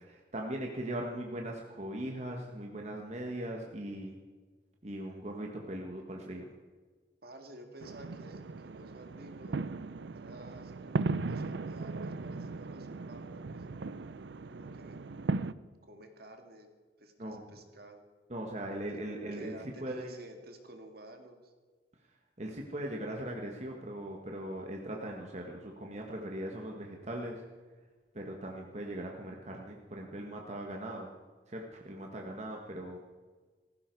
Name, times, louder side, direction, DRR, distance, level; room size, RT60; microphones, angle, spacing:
voice 1, 0.0-4.1 4.8-6.5 17.2-17.4 18.3-20.1 22.4-27.4 28.1-31.1 31.5-33.0, right 1 dB, 40° right, 1 dB, 1.6 m, -39 dB
voice 2, 7.2-9.6 10.1-13.7 14.5-15.0 15.8-16.7 17.0-18.0 19.3-21.5, right 1 dB, 60° right, 5 dB, 2.1 m, -52 dB
sound 1, 7.8-15.5, right 3 dB, 75° right, 0.5 m, -37 dB
18.0 x 15.0 x 4.7 m, 1.4 s
head